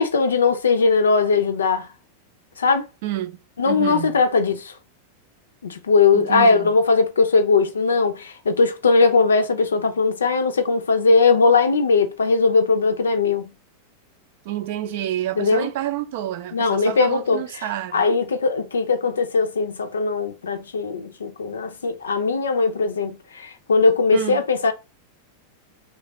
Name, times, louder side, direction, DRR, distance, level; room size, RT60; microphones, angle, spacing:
voice 1, 0.0-1.9 2.6-2.9 3.6-4.7 5.6-13.5 15.4-15.7 16.5-17.7 17.9-24.7, left 4 dB, 70° left, 0.5 m, -19 dB
voice 2, 3.0-3.4 3.7-4.2 6.1-6.7 14.4-18.1 24.1-24.4, right 12 dB, 50° right, 0.5 m, -29 dB
3.1 x 2.4 x 4.0 m
figure-of-eight pair, 90°, 0 cm